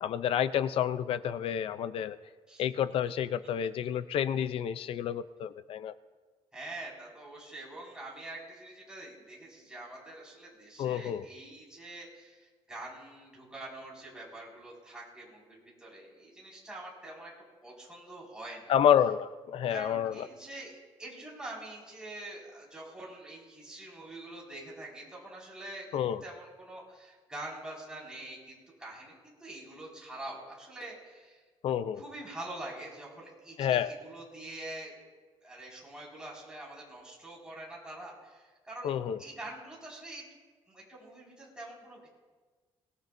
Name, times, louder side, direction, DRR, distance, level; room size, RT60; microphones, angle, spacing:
voice 1, 0.0-2.2 2.6-5.9 10.8-11.2 18.7-20.3 25.9-26.2 31.6-32.0 33.6-33.9 38.8-39.2, left 9 dB, 60° left, 13 dB, 0.5 m, -29 dB
voice 2, 6.5-17.3 17.6-18.7 19.7-31.4 32.0-34.9 35.4-38.9 39.2-40.3 40.7-42.1, right 1 dB, 10° right, -5 dB, 5.2 m, -45 dB
23.5 x 18.0 x 2.6 m, 1.4 s
cardioid pair, 165°, 11 cm